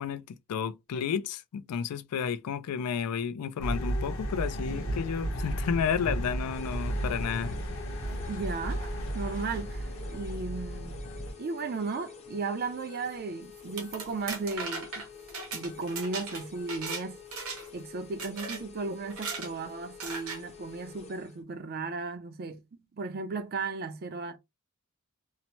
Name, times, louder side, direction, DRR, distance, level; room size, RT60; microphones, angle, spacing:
voice 1, 0.0-7.5, left 7 dB, 85° left, 0.4 m, -32 dB
sound 1, 3.6-11.3, right 1 dB, 60° left, 0.9 m, -34 dB
sound 2, 6.5-21.4, left 7 dB, 30° left, 0.6 m, -49 dB
voice 2, 8.3-11.0 11.4-15.1 15.5-17.2 17.7-24.4, right 4 dB, 45° right, 0.4 m, -35 dB
sound 3, 13.6-17.0 17.3-17.8 18.2-18.6 19.1-19.5 20.0-20.4, right 4 dB, 65° right, 1.0 m, -37 dB
2.8 x 2.0 x 2.9 m
head